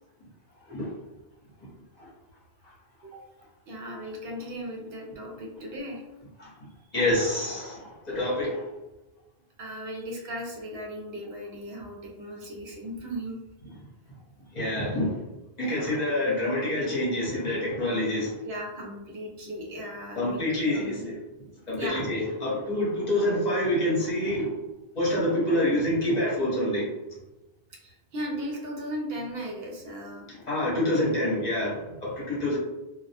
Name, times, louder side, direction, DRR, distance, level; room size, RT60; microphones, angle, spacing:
voice 1, 3.7-6.0 9.6-13.4 15.7-16.0 18.4-20.4 20.7-21.0 21.8-22.1 27.8-30.3, equal, 70° right, 0 dB, 0.8 m, -37 dB
voice 2, 6.9-8.6 14.5-15.1 15.6-18.3 20.2-21.2 21.7-24.5 24.9-26.8 30.5-32.6, left 1 dB, 45° left, -6 dB, 0.9 m, -26 dB
2.2 x 2.1 x 2.7 m, 1.0 s
omnidirectional pair, 1.1 m